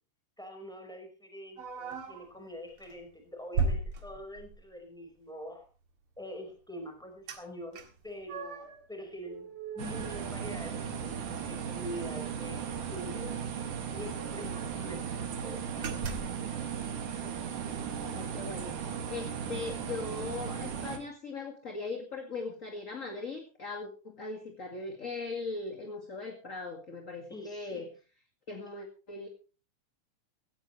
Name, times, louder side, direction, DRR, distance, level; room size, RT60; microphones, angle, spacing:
voice 1, 0.4-5.7 6.2-16.0 27.3-27.9, equal, ahead, 3 dB, 4.6 m, -45 dB
sound 1, 1.6-2.3 2.8-3.0 3.5-4.7 7.3-7.4 7.7-8.8 9.2-11.0 11.3-11.4 11.8-12.0 13.1-13.2 13.4-13.5 14.0-14.8 15.3-15.4 15.8-16.5, right 4 dB, 50° right, 2.5 m, -37 dB
sound 2, 9.8-21.0, right 7 dB, 90° right, 3.7 m, -37 dB
voice 2, 18.0-18.8 19.1-27.9 28.5-29.3, left 3 dB, 30° left, 4 dB, 2.1 m, -39 dB
17.0 x 15.5 x 3.2 m, 0.34 s
omnidirectional pair, 3.5 m